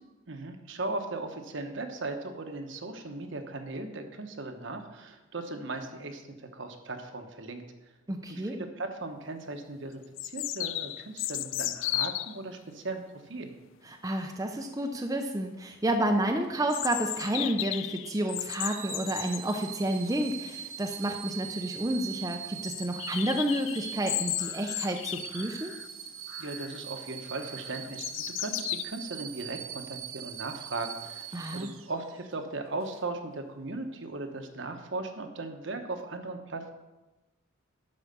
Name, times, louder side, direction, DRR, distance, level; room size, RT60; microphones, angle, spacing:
voice 1, 0.3-7.6 8.3-13.5 26.4-36.7, right 2 dB, 60° right, 5 dB, 1.1 m, -38 dB
voice 2, 8.1-8.6 13.9-25.7 31.3-31.7, right 1 dB, 15° right, 3 dB, 0.6 m, -30 dB
sound 1, 9.2-9.3 10.2-12.4 16.7-19.4 21.1-21.2 21.4-21.5 21.9-22.0 22.6-25.9 26.3-26.8 27.3-28.8, left 15 dB, 65° left, 0.4 m, -35 dB
sound 2, 18.7-32.3 32.8-33.0, right 10 dB, 75° right, 0.7 m, -42 dB
12.0 x 4.9 x 6.8 m, 1.1 s
head